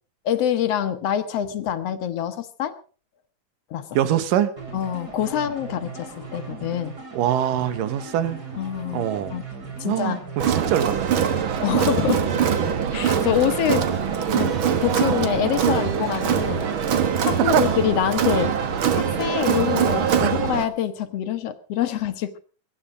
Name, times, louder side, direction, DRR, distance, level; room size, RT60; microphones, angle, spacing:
voice 1, 0.3-2.7 3.7-4.0 4.7-6.9 8.6-9.1 9.3-9.4 9.8-10.2 11.6-12.3 12.9-13.8 14.3-14.5 14.8-16.6 17.2-18.5 18.9-22.4, left 9 dB, 65° left, 10 dB, 1.7 m, -25 dB
voice 2, 3.9-4.5 7.1-8.4 8.9-9.4 9.8-11.3 17.4-17.7 20.2-20.3, right 10 dB, 85° right, 12 dB, 2.8 m, -23 dB
sound 1, 4.6-19.4, right 4 dB, 30° right, 3.5 m, -37 dB
Crowd, 10.4-20.6, right 8 dB, 55° right, 1.5 m, -23 dB
22.5 x 10.0 x 5.1 m, 0.40 s
omnidirectional pair, 3.8 m